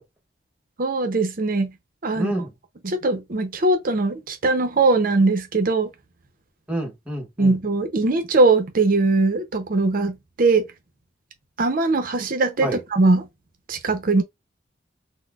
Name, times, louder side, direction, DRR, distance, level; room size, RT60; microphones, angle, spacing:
voice 1, 0.8-1.7 2.0-2.3 2.8-5.9 7.4-10.6 11.6-13.3 13.7-14.2, right 3 dB, 50° right, 0.6 m, -20 dB
voice 2, 2.1-2.5 6.7-7.6 12.6-12.8, right 1 dB, 10° right, 1.0 m, -27 dB
4.0 x 2.1 x 2.3 m
head